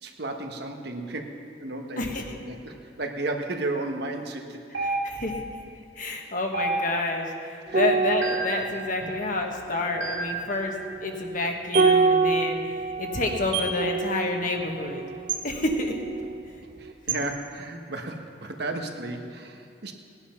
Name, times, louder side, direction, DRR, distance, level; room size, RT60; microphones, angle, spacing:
voice 1, 0.0-2.0 2.4-4.9 6.0-6.2 7.6-7.8 16.8-19.9, right 2 dB, 60° right, 4 dB, 1.3 m, -34 dB
voice 2, 2.0-2.4 4.8-5.4 6.0-10.8 11.0-12.6 13.0-15.0 15.4-15.9, left 2 dB, 45° left, 2 dB, 1.4 m, -29 dB
sound 1, 4.7-5.4 6.5-7.2 8.2-8.6 10.0-10.4 11.7-12.0 13.5-13.8 15.3-15.5 17.1-17.3, right 4 dB, 80° right, 1.6 m, -29 dB
sound 2, 7.7-16.4 16.7-16.9, right 4 dB, 40° right, 0.7 m, -27 dB
18.0 x 9.9 x 5.8 m, 2.4 s
head